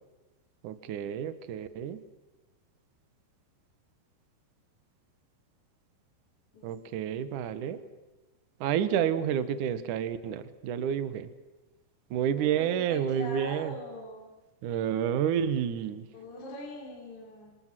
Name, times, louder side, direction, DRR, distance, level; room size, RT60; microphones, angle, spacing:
voice 1, 0.6-2.0 6.6-7.8 8.6-11.3 12.1-13.8 14.6-16.1, right 9 dB, 85° right, 12 dB, 1.8 m, -29 dB
voice 2, 6.5-7.0 12.4-14.3 16.1-17.5, left 1 dB, 40° left, -1 dB, 5.2 m, -43 dB
27.5 x 27.0 x 7.6 m, 1.1 s
omnidirectional pair, 5.6 m